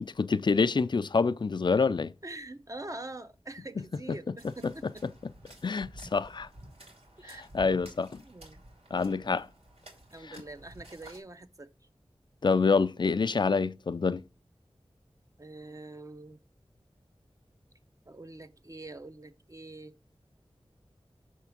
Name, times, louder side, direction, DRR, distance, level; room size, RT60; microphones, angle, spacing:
voice 1, 0.0-2.1 4.6-4.7 5.6-6.5 7.5-8.2 8.9-9.5 12.4-14.2, left 4 dB, 50° left, 0.4 m, -26 dB
voice 2, 2.2-5.1 7.2-7.5 8.2-8.6 8.9-9.3 10.1-11.7 15.4-16.4 18.1-19.9, right 2 dB, 35° right, 0.7 m, -45 dB
sound 1, 4.4-11.2, right 1 dB, 75° right, 2.3 m, -52 dB
5.9 x 3.6 x 5.7 m
wide cardioid pair, 65°, 10 cm